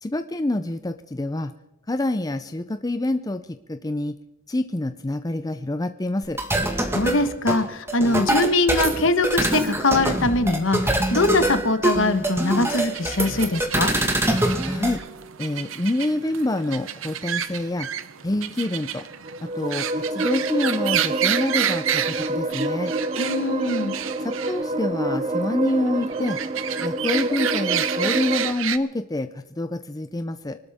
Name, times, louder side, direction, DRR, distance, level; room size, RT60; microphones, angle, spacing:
voice 1, 0.0-1.5 1.9-4.2 4.5-6.4 14.7-15.0 15.4-17.9 18.2-19.1 19.4-22.9 24.2-26.4 26.8-30.6, left 1 dB, 20° left, 9 dB, 0.5 m, -27 dB
sound 1, 6.2-15.0, right 1 dB, 10° right, 1.6 m, -24 dB
voice 2, 6.9-13.9 23.2-23.9, left 2 dB, 65° left, 9 dB, 1.4 m, -22 dB
sound 2, 12.3-28.8, right 10 dB, 70° right, 0.8 m, -30 dB
sound 3, 19.1-28.5, right 2 dB, 30° right, 0.6 m, -27 dB
25.0 x 12.5 x 3.6 m, 0.91 s
head